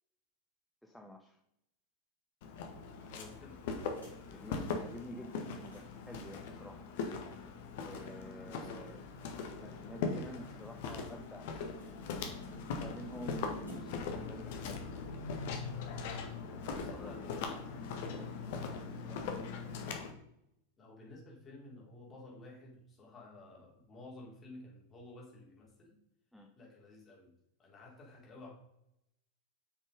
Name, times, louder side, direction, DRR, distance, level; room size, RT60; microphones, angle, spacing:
voice 1, 0.8-1.4 4.2-6.9 7.8-9.1 9.5-11.6 12.4-14.9 16.5-17.5 17.9-19.4 26.3-26.5, equal, ahead, 2 dB, 0.9 m, -50 dB
Walk footsteps, 2.4-20.1, left 5 dB, 50° left, 1.6 m, -41 dB
sound 1, 2.9-6.1 6.4-6.5 6.8-6.9 9.6-14.2, equal, 75° left, 3.2 m, -58 dB
voice 2, 2.9-3.6 8.4-9.1 16.6-17.5 20.8-25.9 26.6-27.3 27.6-28.5, left 2 dB, 20° left, -3 dB, 3.6 m, -53 dB
7.7 x 6.3 x 5.2 m, 0.79 s
figure-of-eight pair, 90°, 0 cm